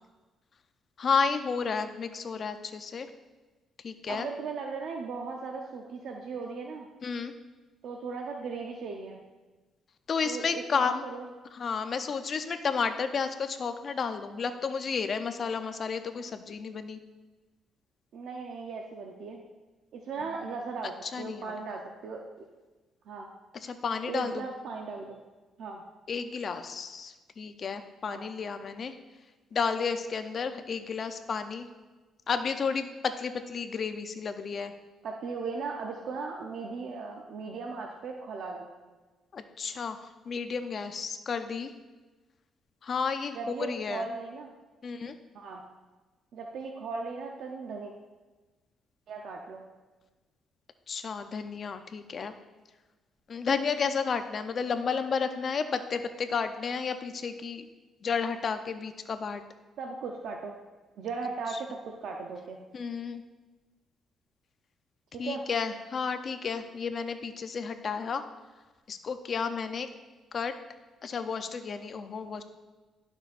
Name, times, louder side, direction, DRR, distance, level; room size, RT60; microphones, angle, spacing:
voice 1, 1.0-3.1 3.8-4.3 7.0-7.3 10.1-11.0 11.5-17.0 21.0-21.5 23.6-24.4 26.1-28.9 29.5-31.7 32.3-34.7 39.3-40.0 40.3-41.7 42.8-44.1 44.8-45.1 50.9-52.3 53.3-57.7 58.0-59.4 62.7-63.2 65.2-68.2 68.9-69.9 70.3-70.5 71.0-72.4, left 5 dB, 50° left, 9 dB, 0.6 m, -32 dB
voice 2, 4.1-6.9 7.8-9.2 10.2-11.3 18.1-19.4 19.9-22.2 23.1-23.3 24.1-25.2 25.6-25.8 28.1-28.2 35.0-38.7 43.3-44.5 45.3-45.6 46.3-47.9 49.1-49.6 59.8-60.5 61.0-62.6 65.1-65.4, right 4 dB, 75° right, 1 dB, 0.7 m, -37 dB
11.5 x 6.2 x 2.5 m, 1.2 s
cardioid pair, 90°, 0 cm